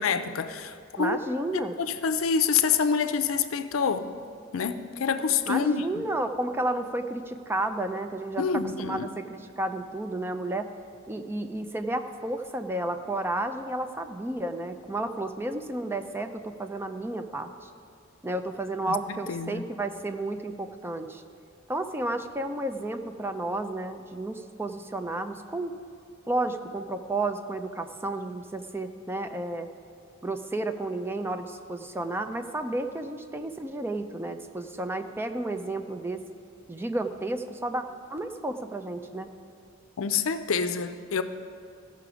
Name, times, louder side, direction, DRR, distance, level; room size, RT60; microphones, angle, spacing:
voice 1, 0.0-1.2 1.5-4.1 4.5-6.0 8.4-9.1 18.9-19.7 40.0-41.2, left 6 dB, 80° left, 10 dB, 0.5 m, -27 dB
voice 2, 1.0-1.8 5.5-8.4 8.8-10.7 11.1-17.7 18.2-21.2 21.7-25.7 26.3-29.7 30.2-36.2 36.7-37.8 38.1-39.3, right 2 dB, 10° right, 7 dB, 0.4 m, -32 dB
15.0 x 5.8 x 4.9 m, 2.3 s
head